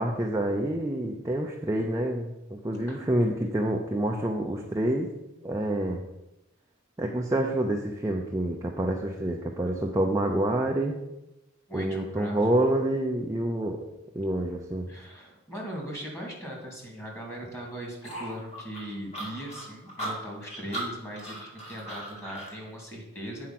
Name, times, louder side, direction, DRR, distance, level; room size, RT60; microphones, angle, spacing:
voice 1, 0.0-5.1 5.4-6.0 7.0-10.9 11.7-13.8 14.1-14.9, right 1 dB, 15° right, 0 dB, 0.6 m, -27 dB
voice 2, 11.7-12.4 14.9-23.5, equal, 15° left, -1 dB, 2.3 m, -39 dB
sound 1, 18.0-22.6, right 1 dB, 30° left, 2.5 m, -38 dB
8.9 x 4.7 x 5.9 m, 0.95 s
head